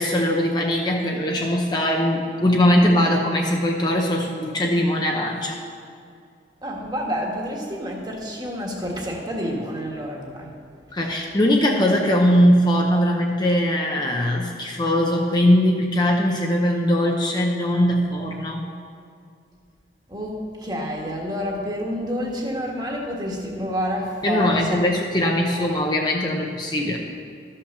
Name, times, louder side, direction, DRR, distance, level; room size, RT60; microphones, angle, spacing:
voice 1, 0.0-5.6 10.9-18.6 24.2-27.0, equal, 25° left, 1 dB, 0.7 m, -20 dB
voice 2, 6.6-10.5 20.1-24.9 25.5-25.8, equal, 25° right, -1 dB, 1.6 m, -29 dB
13.0 x 5.7 x 6.8 m, 2.3 s
head